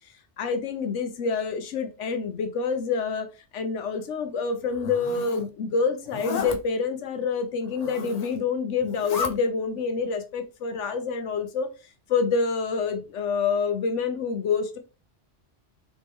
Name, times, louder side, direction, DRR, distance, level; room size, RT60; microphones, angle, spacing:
voice 1, 0.4-3.3 3.5-11.7 12.1-14.8, left 5 dB, 85° left, 1.1 m, -27 dB
Zipper (clothing), 4.7-5.4 6.1-6.6 7.7-8.4 8.8-9.3, left 5 dB, 50° left, 0.4 m, -33 dB
4.2 x 3.2 x 3.5 m
omnidirectional pair, 1.2 m